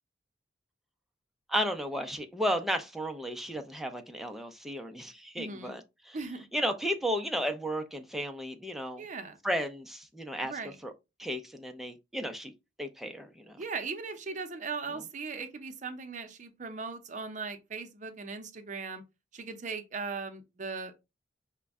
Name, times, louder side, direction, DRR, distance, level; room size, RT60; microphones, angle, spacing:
voice 1, 1.5-6.2 6.5-9.0 9.4-10.9 11.2-12.5 12.8-13.6, equal, ahead, 0.4 m, -34 dB
voice 2, 5.4-5.8 6.1-6.5 9.0-9.4 10.4-10.8 13.6-19.0 19.3-20.9, right 4 dB, 45° right, 0.6 m, -38 dB
5.0 x 2.2 x 3.5 m
head